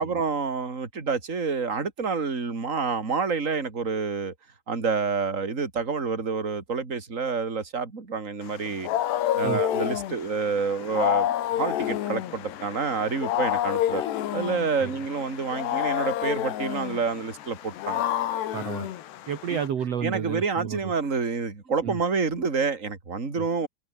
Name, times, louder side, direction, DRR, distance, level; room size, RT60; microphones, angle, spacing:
voice 1, 0.0-4.3 4.7-8.9 9.3-14.0 14.3-18.0 20.0-23.7, right 5 dB, 20° right, 3.2 m, -28 dB
Wild animals, 8.5-19.7, left 12 dB, 75° left, 3.9 m, -29 dB
voice 2, 18.5-18.9 19.3-20.9 21.8-22.0 23.4-23.5, right 8 dB, 45° right, 2.4 m, -31 dB
omnidirectional pair, 4.9 m